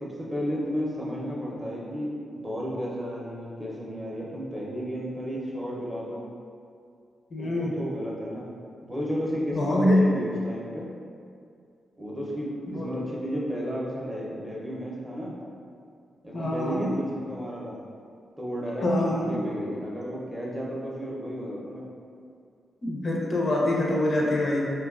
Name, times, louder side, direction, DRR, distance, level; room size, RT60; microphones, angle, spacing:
voice 1, 0.0-6.3 7.4-8.5 8.8-10.9 12.0-15.3 16.2-17.8 18.4-18.9 19.3-21.8, equal, 10° right, -5 dB, 0.5 m, -33 dB
voice 2, 7.3-7.7 9.5-10.0 12.7-12.9 16.3-16.9 18.8-19.4 22.8-24.6, left 1 dB, 45° left, -3 dB, 0.4 m, -24 dB
3.3 x 2.2 x 2.3 m, 2.3 s
cardioid pair, 95°, 0 cm